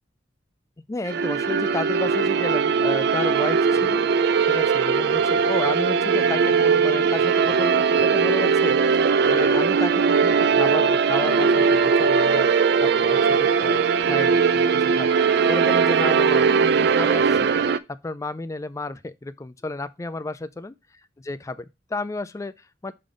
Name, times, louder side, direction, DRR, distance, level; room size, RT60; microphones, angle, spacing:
voice 1, 0.9-8.8 9.3-15.1 15.5-17.5 18.0-20.7 21.2-22.9, left 2 dB, 15° left, 0.3 m, -32 dB
sound 1, 1.1-17.8, right 5 dB, 60° right, 0.4 m, -20 dB
5.2 x 3.9 x 5.0 m
head